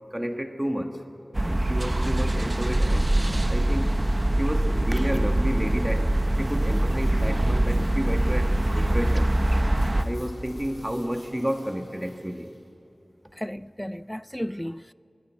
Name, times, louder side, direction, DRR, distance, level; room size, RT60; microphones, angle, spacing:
voice 1, 0.1-1.1 1.4-4.0 4.4-6.1 6.4-9.3 9.9-12.5, equal, 15° right, 1.5 m, -31 dB
sound 1, 1.3-10.0, right 1 dB, 35° right, 1.0 m, -23 dB
sound 2, 5.5-12.6, left 1 dB, 70° left, 3.9 m, -47 dB
voice 2, 13.3-14.9, equal, 10° left, 0.4 m, -34 dB
29.0 x 11.0 x 8.2 m
wide cardioid pair, 65°, 0 cm